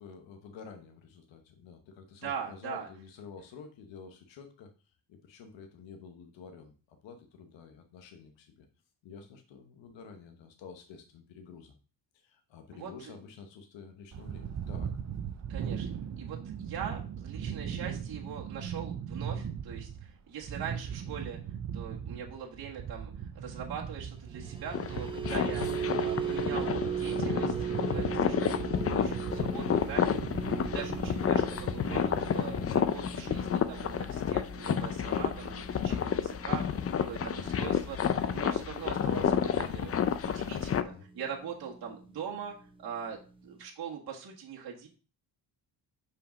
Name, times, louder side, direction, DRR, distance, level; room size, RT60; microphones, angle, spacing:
voice 1, 0.0-4.7 5.1-8.7 9.0-11.7 12.1-15.0 25.2-25.5 30.6-30.9 36.7-36.9 40.7-41.1, left 5 dB, 85° left, 5 dB, 1.1 m, -50 dB
voice 2, 2.2-2.9 12.7-13.1 15.5-15.9 16.2-21.4 21.7-42.5 42.8-43.2 43.4-44.9, right 7 dB, 55° right, -3 dB, 1.7 m, -42 dB
sound 1, 14.1-32.8, right 8 dB, 40° right, 0.6 m, -39 dB
sound 2, 24.3-40.7 41.0-41.3 41.7-41.9, right 6 dB, 10° right, 0.9 m, -38 dB
sound 3, 24.7-40.8, left 8 dB, 35° left, 0.5 m, -30 dB
5.7 x 5.1 x 5.1 m, 0.38 s
cardioid pair, 125°, 43 cm